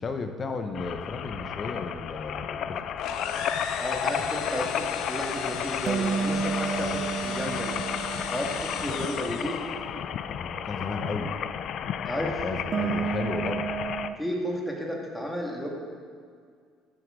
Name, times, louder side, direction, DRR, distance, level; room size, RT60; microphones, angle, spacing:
voice 1, 0.0-2.8 4.2-4.3 6.7-7.1 10.3-11.3 12.1-13.7, left 3 dB, 30° left, 6 dB, 0.9 m, -34 dB
sound 1, 0.7-14.1, left 8 dB, 50° left, 0.4 m, -33 dB
sound 2, 3.0-9.7, left 7 dB, 70° left, 0.7 m, -36 dB
voice 2, 3.7-7.8 8.3-9.6 12.1-12.3 14.2-15.7, equal, 5° left, -2 dB, 1.9 m, -32 dB
sound 3, 5.9-10.0 12.7-14.2, right 6 dB, 40° right, 0.4 m, -32 dB
14.0 x 8.0 x 3.8 m, 2.1 s
cardioid pair, 115°, 0 cm